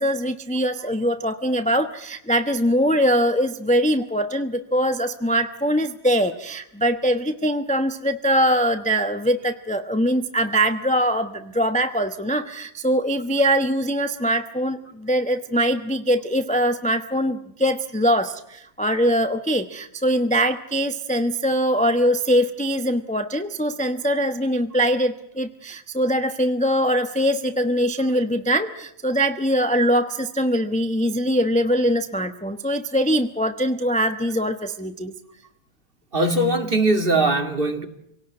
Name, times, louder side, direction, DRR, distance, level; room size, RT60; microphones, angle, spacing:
voice 1, 0.0-35.1, equal, 5° left, 7 dB, 0.5 m, -22 dB
voice 2, 36.1-37.9, right 2 dB, 30° right, 5 dB, 2.2 m, -20 dB
27.0 x 18.0 x 9.6 m, 0.78 s
omnidirectional pair, 2.1 m